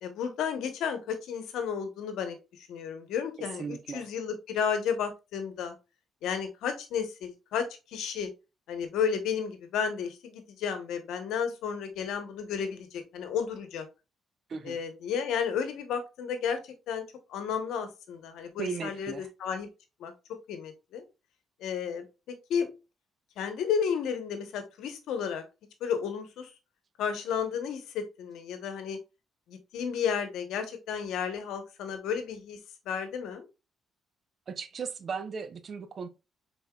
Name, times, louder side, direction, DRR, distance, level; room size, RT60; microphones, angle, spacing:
voice 1, 0.0-5.7 6.2-8.3 8.7-13.9 14.6-16.6 16.9-19.7 20.0-20.1 20.5-21.1 21.6-22.1 22.5-22.7 23.4-25.4 25.8-26.5 27.0-29.0 29.5-32.6 32.9-33.5, left 7 dB, 85° left, 0.9 m, -32 dB
voice 2, 3.6-4.1 14.5-14.8 18.6-19.3 34.5-36.1, right 5 dB, 50° right, 0.7 m, -36 dB
5.5 x 3.8 x 2.3 m
cardioid pair, 90°, 0 cm